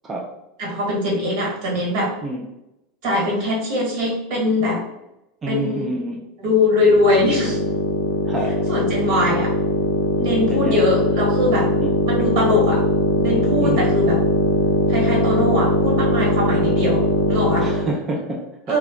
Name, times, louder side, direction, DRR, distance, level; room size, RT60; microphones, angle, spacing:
voice 1, 0.6-2.1 3.0-4.8 5.5-5.9 6.4-7.6 8.7-9.5 10.2-11.7 12.0-12.8 13.2-14.1 14.9-17.7 18.7-18.8, left 1 dB, 65° right, -2 dB, 1.4 m, -21 dB
voice 2, 5.4-6.2 8.2-8.7 10.5-10.9 11.8-11.9 13.6-13.9 17.6-18.8, right 2 dB, 20° right, -2 dB, 0.4 m, -28 dB
sound 1, 6.7-18.0, left 3 dB, 75° left, 0.4 m, -20 dB
2.4 x 2.2 x 3.5 m, 0.90 s
supercardioid pair, 125°, 0 cm